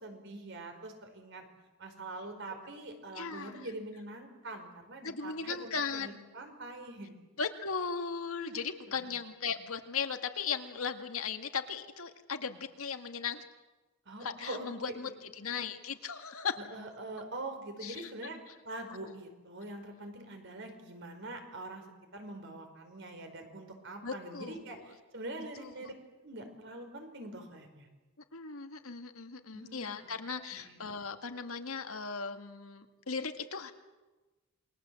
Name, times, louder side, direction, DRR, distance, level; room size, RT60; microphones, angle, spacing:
voice 1, 0.0-1.4 1.8-7.1 8.5-8.6 14.0-14.7 16.7-18.4 18.6-21.8 22.1-24.8 25.1-25.9 26.2-27.9 29.5-30.2 30.5-30.8, right 2 dB, 55° right, 5 dB, 4.9 m, -44 dB
voice 2, 3.1-3.7 5.0-6.2 7.4-13.5 14.2-16.6 17.8-18.1 18.5-18.6 24.0-25.0 25.6-25.9 28.3-33.7, left 5 dB, 75° left, 6 dB, 1.9 m, -37 dB
28.5 x 22.0 x 7.7 m, 1.2 s
head